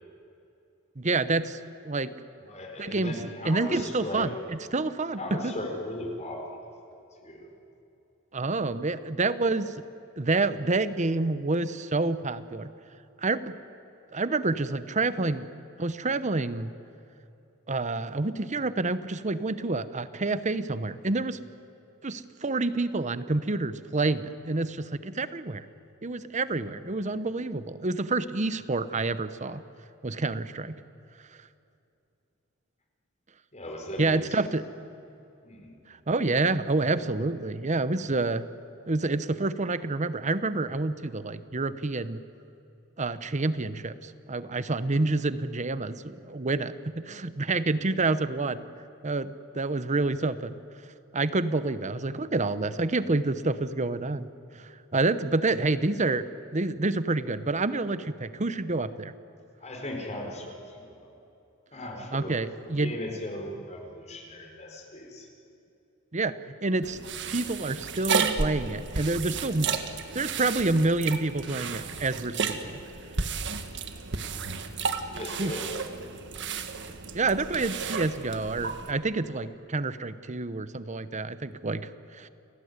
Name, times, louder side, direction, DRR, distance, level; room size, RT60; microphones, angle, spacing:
voice 1, 1.0-1.6 1.8-2.1 2.8-3.1 3.4-5.5 8.3-9.7 10.2-12.7 13.2-13.5 14.1-15.5 15.8-16.7 17.7-21.4 22.0-25.6 26.0-29.6 30.0-30.7 34.0-34.6 36.1-38.5 38.9-42.2 43.0-46.7 47.0-48.7 49.0-50.5 51.1-54.3 54.6-56.2 56.5-59.1 62.1-63.0 66.1-67.0 67.3-69.7 70.1-72.7 75.4-75.5 77.1-81.9 82.2-82.3, right 3 dB, 35° right, 13 dB, 0.9 m, -28 dB
voice 2, 2.5-4.3 5.1-6.7 7.2-7.5 33.5-34.3 35.4-35.7 59.6-61.1 61.7-65.3 69.5-70.3 75.1-75.9, left 1 dB, 30° left, 2 dB, 4.7 m, -38 dB
sound 1, 66.8-78.9, right 5 dB, 55° right, 1.6 m, -33 dB
29.5 x 19.0 x 9.6 m, 2.8 s
head